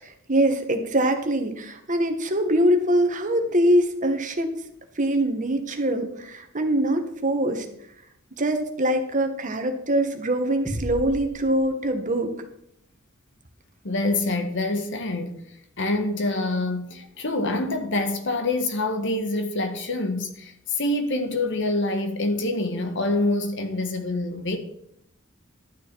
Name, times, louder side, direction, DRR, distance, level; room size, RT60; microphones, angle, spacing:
voice 1, 0.0-4.5 5.0-7.6 8.4-12.3, right 1 dB, 40° right, 1.4 m, -23 dB
sound 1, 10.6-12.4, equal, ahead, 2.4 m, -35 dB
voice 2, 13.8-15.5 15.8-24.6, left 2 dB, 60° left, 1.4 m, -26 dB
12.0 x 9.3 x 4.7 m
head